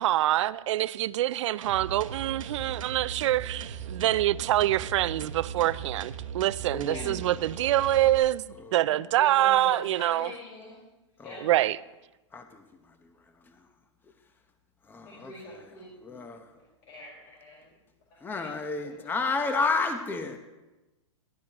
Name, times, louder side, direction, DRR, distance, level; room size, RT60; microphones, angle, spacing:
voice 1, 0.0-10.3 11.4-11.8, right 14 dB, 65° right, 0.4 m, -25 dB
sound 1, 1.6-8.2, right 7 dB, 80° right, 1.0 m, -39 dB
voice 2, 6.7-7.2 8.6-8.8 11.2-11.4 12.3-12.6 14.9-15.3 16.0-16.5 18.2-20.4, left 4 dB, 10° left, 0.9 m, -31 dB
voice 3, 9.1-10.8 11.2-11.4 15.0-16.2 16.5-17.7 18.3-18.5 18.8-19.1, left 2 dB, 50° left, 4.4 m, -44 dB
16.5 x 12.0 x 3.0 m
hypercardioid pair, 120°, 17 cm